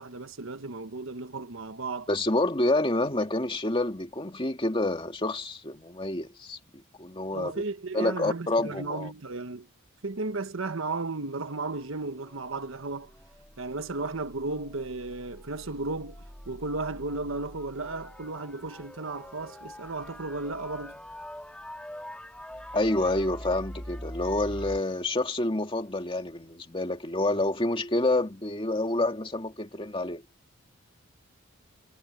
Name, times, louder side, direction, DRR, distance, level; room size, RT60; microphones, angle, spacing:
voice 1, 0.0-2.1 7.3-9.7 10.0-13.1 13.6-21.0, right 3 dB, 70° right, 1.2 m, -34 dB
voice 2, 2.1-6.6 7.0-7.6 7.9-9.1 22.7-30.2, left 2 dB, 25° left, 2.3 m, -28 dB
sound 1, 11.5-24.8, equal, 5° left, 1.8 m, -44 dB
head